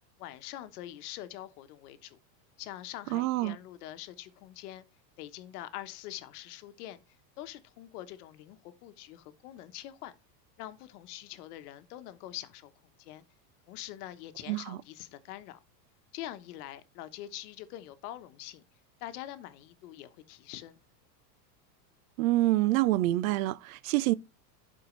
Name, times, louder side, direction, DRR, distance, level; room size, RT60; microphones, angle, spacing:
voice 1, 0.2-2.2 2.6-4.8 5.2-7.0 7.4-10.1 10.6-12.7 13.0-13.2 13.7-15.6 16.1-18.6 19.0-20.8, left 13 dB, 60° left, 1.1 m, -44 dB
voice 2, 3.1-3.6 14.5-14.8 22.2-24.1, right 17 dB, 55° right, 0.5 m, -26 dB
11.5 x 4.4 x 3.1 m
supercardioid pair, 135°, 50 cm